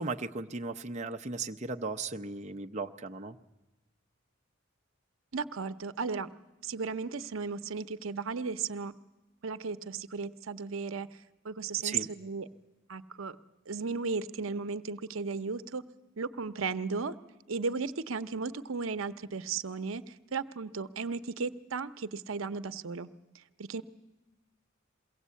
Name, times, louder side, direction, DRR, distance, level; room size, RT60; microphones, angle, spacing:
voice 1, 0.0-3.4 11.8-12.1, right 3 dB, 35° right, 5 dB, 0.6 m, -36 dB
voice 2, 5.3-6.3 6.6-8.9 9.4-11.1 11.4-12.5 12.9-13.4 13.7-15.8 16.2-17.2 17.5-20.0 20.3-23.1 23.6-23.8, right 4 dB, 80° right, 13 dB, 0.7 m, -35 dB
22.5 x 16.5 x 8.3 m, 1.1 s
head